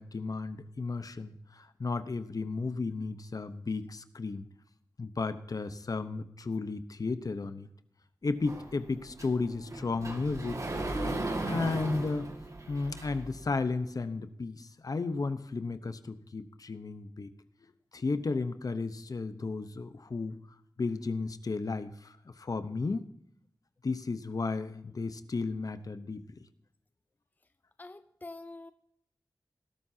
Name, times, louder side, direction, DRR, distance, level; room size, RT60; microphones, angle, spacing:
voice 1, 0.0-4.5 5.0-7.7 8.2-10.6 11.4-12.3 12.7-17.3 17.9-20.4 20.8-23.1 23.8-26.2, left 3 dB, 55° left, 11 dB, 1.0 m, -34 dB
Sliding door, 8.5-13.4, right 2 dB, 45° right, 2.0 m, -37 dB
voice 2, 27.8-28.7, left 2 dB, 25° left, 11 dB, 0.6 m, -45 dB
19.5 x 12.5 x 2.8 m, 0.72 s
wide cardioid pair, 65°, 7 cm